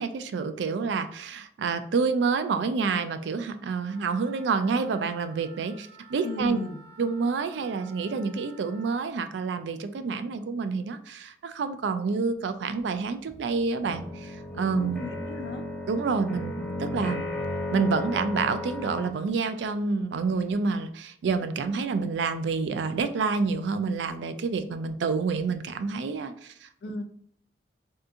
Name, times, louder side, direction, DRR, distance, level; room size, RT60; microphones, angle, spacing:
voice 1, 0.0-6.6 7.0-15.1 15.9-17.3 17.7-26.7, right 4 dB, 80° right, 9 dB, 0.4 m, -28 dB
Wind instrument woodwind instrument, 3.8-9.0, right 3 dB, 60° right, 1.5 m, -52 dB
voice 2, 6.2-6.8 14.8-15.7 26.8-27.0, left 2 dB, 65° left, 6 dB, 0.4 m, -35 dB
sound 1, 13.3-19.1, left 1 dB, ahead, 0.6 m, -35 dB
3.5 x 2.7 x 2.5 m, 0.65 s
head